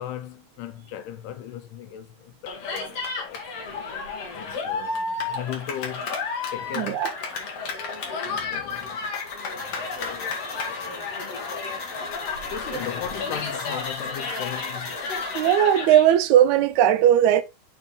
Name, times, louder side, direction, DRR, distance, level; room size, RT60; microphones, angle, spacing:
voice 1, 0.0-3.4 4.3-6.1 6.5-7.0 8.2-9.1 9.5-11.2 11.7-11.8 12.5-15.0, left 10 dB, 85° left, 2.4 m, -37 dB
Cheering, 2.5-16.1, left 4 dB, 55° left, 2.6 m, -32 dB
voice 2, 6.8-7.1 15.3-17.4, right 10 dB, 75° right, 1.9 m, -18 dB
sound 1, 8.7-15.8, left 3 dB, 35° left, 2.0 m, -37 dB
7.1 x 5.1 x 3.6 m
omnidirectional pair, 3.6 m